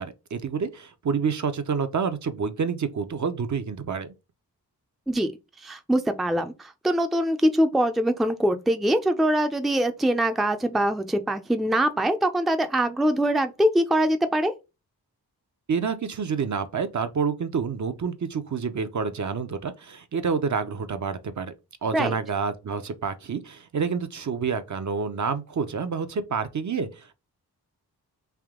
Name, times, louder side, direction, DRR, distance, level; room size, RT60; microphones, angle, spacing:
voice 1, 0.0-4.1 15.7-21.5 21.8-27.1, right 5 dB, 50° right, 0.6 m, -28 dB
voice 2, 5.6-14.5 21.9-22.1, right 1 dB, ahead, 0.4 m, -23 dB
3.5 x 2.7 x 3.6 m
cardioid pair, 55°, 39 cm